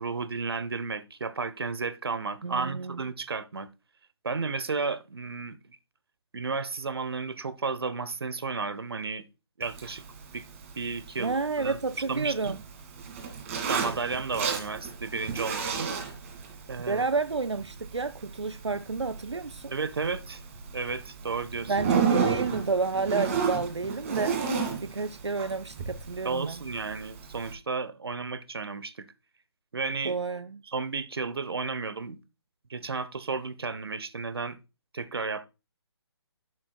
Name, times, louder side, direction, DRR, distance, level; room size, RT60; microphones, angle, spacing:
voice 1, 0.0-3.7 4.2-5.8 6.3-9.2 9.6-10.0 10.3-10.4 10.8-11.8 12.1-12.6 13.7-15.9 16.7-17.0 19.7-20.4 20.7-21.7 26.2-29.1 29.7-30.2 30.7-32.2 32.7-34.6 34.9-35.5, right 4 dB, 65° right, 0.9 m, -33 dB
voice 2, 2.4-3.0 11.2-12.6 16.9-19.7 21.7-24.4 24.8-26.6 30.0-30.6, right 4 dB, 85° right, 0.4 m, -30 dB
Zipper (clothing), 9.6-27.5, right 6 dB, 30° right, 2.0 m, -33 dB
11.0 x 7.9 x 2.3 m
figure-of-eight pair, 140°, 14 cm